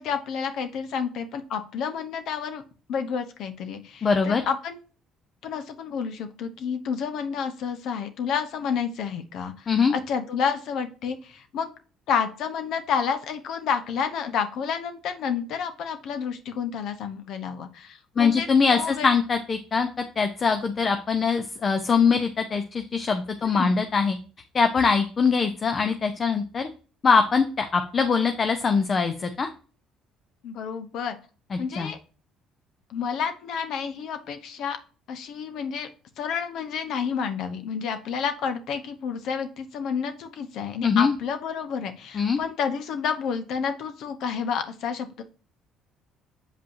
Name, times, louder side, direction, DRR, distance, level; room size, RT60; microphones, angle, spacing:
voice 1, 0.0-2.6 2.9-4.8 5.4-11.7 12.1-19.1 23.4-23.8 30.4-31.2 31.6-32.0 32.9-34.8 35.1-35.9 36.2-45.2, left 7 dB, 70° left, 8 dB, 0.9 m, -30 dB
voice 2, 4.0-4.4 9.7-9.9 18.2-19.9 20.2-24.2 24.5-26.7 27.0-29.5 31.5-31.9 40.8-41.2 42.1-42.4, left 5 dB, 40° left, 7 dB, 0.7 m, -22 dB
7.0 x 5.1 x 2.7 m, 0.37 s
supercardioid pair, 80°, 0 cm